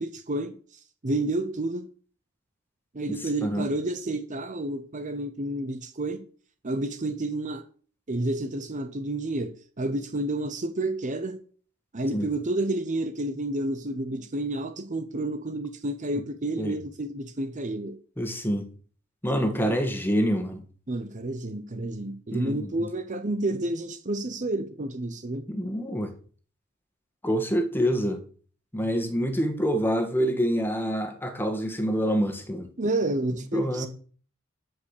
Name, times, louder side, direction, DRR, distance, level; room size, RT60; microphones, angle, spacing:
voice 1, 0.0-1.9 2.9-6.2 6.6-7.6 8.1-11.4 11.9-18.0 19.6-19.8 20.9-25.5 32.8-33.9, right 2 dB, 35° right, 0.8 m, -30 dB
voice 2, 18.2-18.7 19.2-20.6 22.3-22.7 25.5-26.1 27.2-28.2 28.7-32.7 33.5-33.9, equal, 10° left, 1.8 m, -26 dB
13.5 x 5.3 x 6.7 m
head